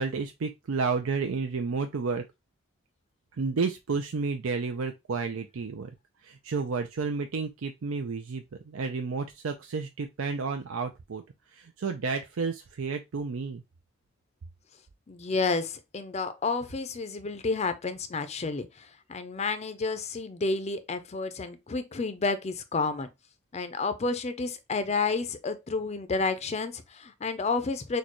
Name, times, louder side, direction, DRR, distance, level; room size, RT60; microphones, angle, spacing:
voice 1, 0.0-2.2 3.3-5.9 6.2-11.2 11.5-13.6, right 4 dB, 85° right, 0.5 m, -31 dB
voice 2, 15.1-23.1 23.5-28.0, left 4 dB, 30° left, 0.5 m, -30 dB
6.4 x 2.3 x 3.0 m
head